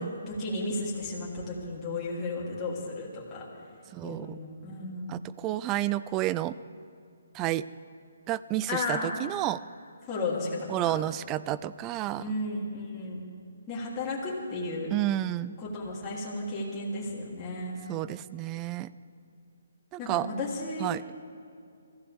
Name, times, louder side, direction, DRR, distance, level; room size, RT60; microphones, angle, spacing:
voice 1, 0.3-3.4 4.0-5.1 8.7-9.2 10.1-10.6 10.8-11.0 12.2-13.2 13.7-14.9 15.6-17.8 20.0-20.9, left 2 dB, 20° left, -6 dB, 3.2 m, -34 dB
voice 2, 3.9-4.4 5.1-6.5 7.3-7.6 8.3-9.6 10.7-12.3 14.9-15.6 17.9-18.9 19.9-20.3 20.8-21.0, right 14 dB, 20° right, 17 dB, 0.4 m, -30 dB
24.5 x 15.0 x 3.6 m, 2.5 s
hypercardioid pair, 150°, 0 cm